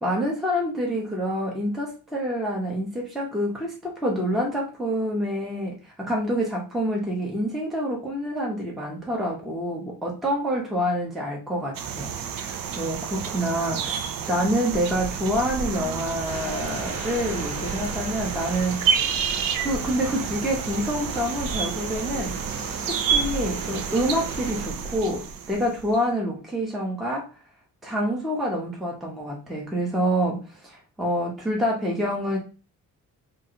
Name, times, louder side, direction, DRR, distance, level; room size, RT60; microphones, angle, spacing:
voice 1, 0.0-14.0 14.3-19.0 19.6-22.4 22.8-27.3 27.8-32.4, equal, ahead, -3 dB, 0.6 m, -27 dB
sound 1, 11.7-26.0, right 7 dB, 80° right, 0.5 m, -30 dB
sound 2, 16.2-24.7, right 3 dB, 45° right, 1.0 m, -37 dB
3.6 x 2.5 x 2.8 m, 0.34 s
wide cardioid pair, 155°, 34 cm